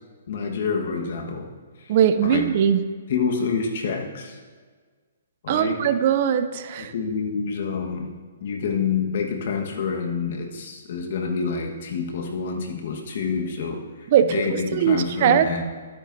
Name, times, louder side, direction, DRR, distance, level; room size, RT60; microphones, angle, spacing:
voice 1, 0.3-1.5 1.8-1.9 2.2-2.5 3.1-4.4 5.4-5.9 6.8-8.1 8.4-13.8 14.2-15.6, left 5 dB, 60° left, 2 dB, 1.4 m, -27 dB
voice 2, 1.9-2.8 5.5-6.9 14.1-15.5, right 9 dB, 45° right, 11 dB, 0.5 m, -20 dB
12.5 x 9.0 x 2.7 m, 1.5 s
hypercardioid pair, 140°, 0 cm